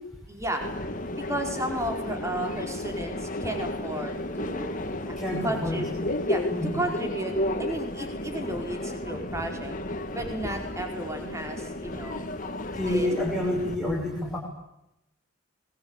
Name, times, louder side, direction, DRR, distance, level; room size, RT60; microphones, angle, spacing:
voice 1, 0.3-0.6 1.2-4.8 5.1-5.2 5.4-5.9 6.3-6.4 6.7-7.3 7.6-9.7 10.1-12.3 12.9-13.1, right 1 dB, 15° right, 3 dB, 4.8 m, -33 dB
Subway metro underground, 0.6-13.7, left 1 dB, 40° left, 2.1 m, -33 dB
voice 2, 5.2-6.2 6.5-6.8 12.7-14.4, left 1 dB, ahead, -3 dB, 6.9 m, -28 dB
26.0 x 22.0 x 9.0 m, 0.84 s
head